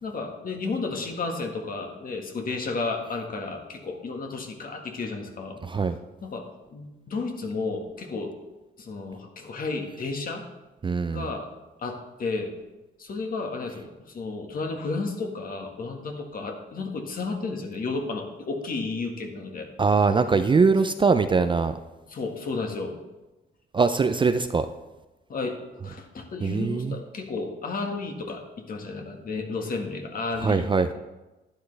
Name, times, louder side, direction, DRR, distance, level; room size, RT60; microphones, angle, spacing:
voice 1, 0.0-5.6 6.2-6.5 6.7-8.3 8.8-10.4 11.1-11.5 11.8-12.5 13.0-19.7 22.1-23.0 25.3-25.6 25.8-31.0, left 3 dB, 45° left, 3 dB, 1.8 m, -32 dB
voice 2, 5.6-6.0 10.8-11.3 19.8-21.8 23.7-24.7 26.4-27.0 30.4-31.0, right 4 dB, 25° right, 9 dB, 0.4 m, -22 dB
11.5 x 10.0 x 3.4 m, 1.1 s
cardioid pair, 105°, 20 cm